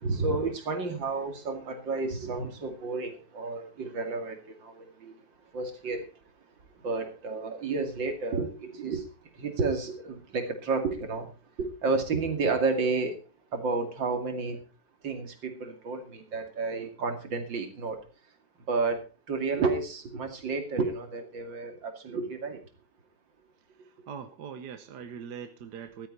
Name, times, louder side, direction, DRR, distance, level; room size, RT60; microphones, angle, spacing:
voice 1, 0.0-4.7 5.0-5.1 5.5-6.1 6.8-9.0 9.4-11.3 11.6-13.1 13.5-14.6 15.0-18.0 18.7-19.0 19.3-22.6, right 4 dB, 85° right, 6 dB, 3.1 m, -31 dB
voice 2, 23.7-26.1, right 7 dB, 65° right, 9 dB, 1.6 m, -42 dB
14.5 x 13.0 x 4.2 m, 0.33 s
omnidirectional pair, 2.0 m